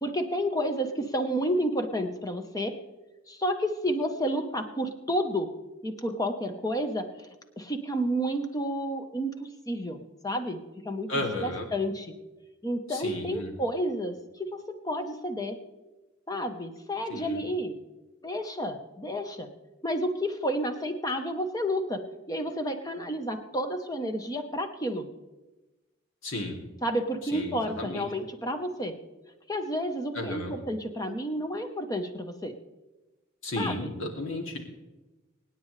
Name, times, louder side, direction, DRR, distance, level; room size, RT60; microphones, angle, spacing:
voice 1, 0.0-2.8 3.3-5.5 5.8-7.3 7.6-10.0 10.2-10.6 10.8-12.1 12.6-15.6 16.3-17.7 18.2-19.5 19.8-25.1 26.8-29.0 29.5-32.5 33.6-33.9, equal, 20° left, 6 dB, 1.1 m, -31 dB
voice 2, 11.1-11.7 12.9-13.5 17.1-17.4 26.2-26.5 27.3-28.1 30.1-30.5 33.4-34.6, left 1 dB, 75° left, 1 dB, 2.6 m, -33 dB
25.0 x 9.7 x 3.3 m, 1.1 s
head